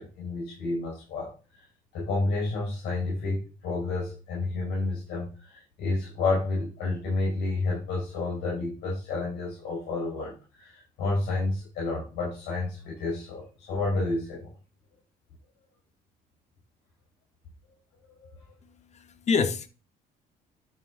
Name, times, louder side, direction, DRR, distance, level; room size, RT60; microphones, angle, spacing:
voice 1, 0.0-1.6 1.9-14.5 18.2-18.3, left 3 dB, 80° left, 4.9 m, -30 dB
voice 2, 18.6-19.7, left 5 dB, 40° left, 1.2 m, -28 dB
11.0 x 5.8 x 3.8 m
cardioid pair, 110°, 17 cm